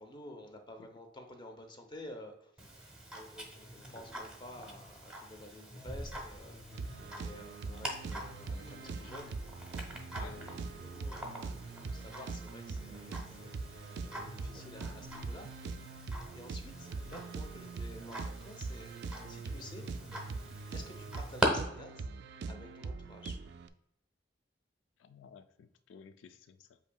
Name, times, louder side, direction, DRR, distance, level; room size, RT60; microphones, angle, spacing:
voice 1, 0.0-2.8 3.1-9.4 9.8-15.9 16.3-19.0 19.3-19.9 20.7-22.1 22.4-23.4, left 1 dB, 25° left, 5 dB, 0.7 m, -51 dB
Tick-tock, 2.6-21.5, right 1 dB, 5° right, 0.8 m, -43 dB
sound 1, 6.7-23.7, right 4 dB, 60° right, 0.3 m, -42 dB
voice 2, 25.0-26.8, left 6 dB, 80° left, 11 dB, 0.3 m, -55 dB
8.0 x 2.7 x 2.2 m, 0.82 s
head